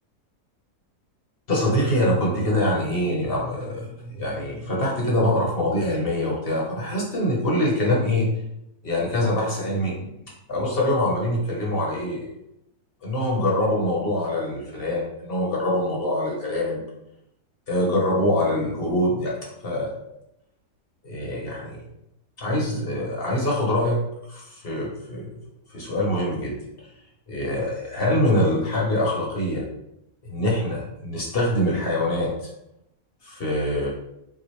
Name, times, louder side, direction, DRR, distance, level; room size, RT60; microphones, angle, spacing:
voice 1, 1.5-8.3 8.8-10.1 10.5-12.3 13.0-16.8 17.7-19.3 19.6-19.9 21.0-21.8 22.4-24.0 24.3-25.3 25.7-26.6 27.3-29.6 30.2-32.5 33.2-33.9, left 1 dB, 40° left, -3 dB, 1.1 m, -24 dB
6.1 x 2.4 x 3.1 m, 0.83 s
omnidirectional pair, 1.7 m